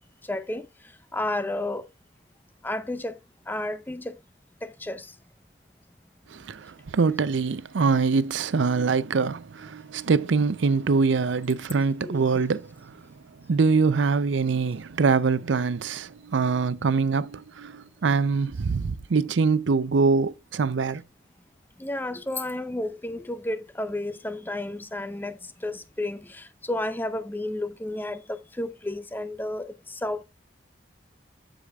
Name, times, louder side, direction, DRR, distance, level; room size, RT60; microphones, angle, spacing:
voice 1, 0.3-0.7 1.1-1.8 2.6-3.2 3.5-4.2 4.6-5.1 12.0-12.2 21.8-30.2, left 1 dB, 10° left, 0.4 m, -32 dB
voice 2, 6.3-12.9 13.5-21.0, right 4 dB, 80° right, 0.5 m, -24 dB
12.0 x 5.0 x 2.3 m
head